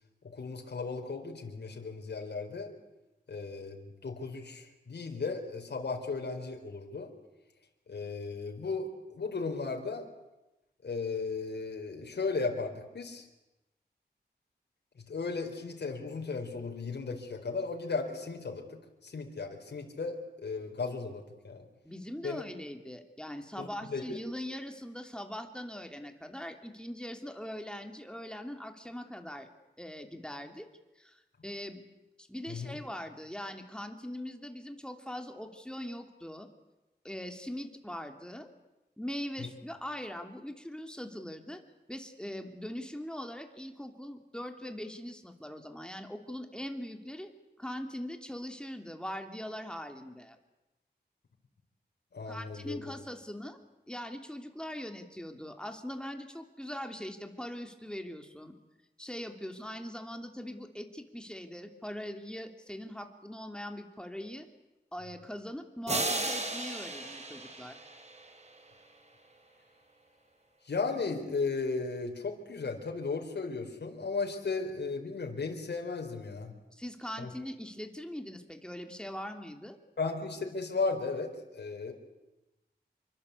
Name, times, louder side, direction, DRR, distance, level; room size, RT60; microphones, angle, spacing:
voice 1, 0.3-2.7 3.3-7.1 7.9-10.1 10.8-13.2 15.1-18.7 19.0-21.6 22.2-22.4 23.6-24.2 32.5-32.8 39.4-39.5 52.1-52.9 70.6-76.6 77.2-77.3 80.0-81.9, left 4 dB, 80° left, 2 dB, 4.5 m, -35 dB
voice 2, 21.8-29.5 29.8-30.7 31.0-31.8 32.2-36.5 37.0-38.5 39.0-41.6 41.9-47.3 47.6-50.4 52.3-53.6 53.9-58.5 59.0-64.5 64.9-67.8 76.7-79.8, left 1 dB, 5° left, 5 dB, 3.0 m, -41 dB
sound 1, 65.9-68.7, right 2 dB, 40° right, 4.7 m, -35 dB
28.0 x 24.0 x 8.4 m, 1.0 s
wide cardioid pair, 110°, 17 cm